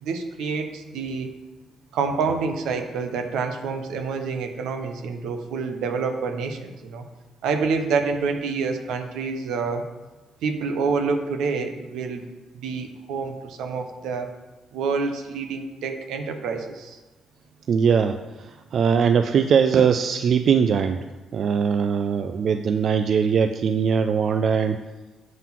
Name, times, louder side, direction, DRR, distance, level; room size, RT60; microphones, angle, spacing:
voice 1, 0.0-1.3 1.9-7.1 7.4-9.9 10.4-12.3 12.5-14.3 14.7-17.0, right 5 dB, 85° right, 6 dB, 0.7 m, -27 dB
voice 2, 17.7-18.2 18.7-24.8, right 6 dB, 60° right, 8 dB, 0.3 m, -21 dB
7.4 x 3.9 x 5.8 m, 1.1 s
cardioid pair, 90°, 0 cm